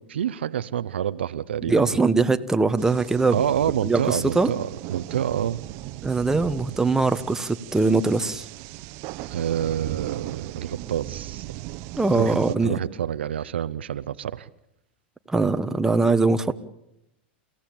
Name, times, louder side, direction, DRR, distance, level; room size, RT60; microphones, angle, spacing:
voice 1, 0.1-1.8 3.3-5.6 9.3-11.4 12.1-14.5, right 9 dB, 85° right, 0.8 m, -27 dB
voice 2, 1.7-3.4 3.8-4.5 6.0-8.4 12.0-12.8 15.3-16.5, right 3 dB, 10° right, 1.3 m, -22 dB
sound 1, 2.8-12.6, right 17 dB, 55° right, 1.0 m, -38 dB
29.0 x 16.0 x 8.7 m
hypercardioid pair, 100°, 6 cm